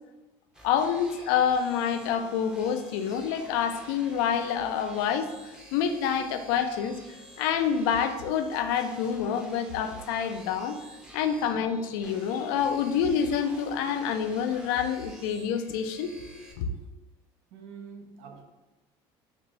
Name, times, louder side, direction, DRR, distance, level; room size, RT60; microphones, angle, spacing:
sound 1, 0.5-16.5, right 1 dB, 5° right, 0.6 m, -49 dB
voice 1, 0.6-7.0 7.4-10.8 11.1-16.1 16.6-16.7, left 7 dB, 90° left, 8 dB, 0.4 m, -27 dB
voice 2, 17.5-18.4, right 6 dB, 75° right, 4 dB, 0.7 m, -46 dB
4.1 x 2.5 x 3.1 m, 1.1 s
supercardioid pair, 110°, 11 cm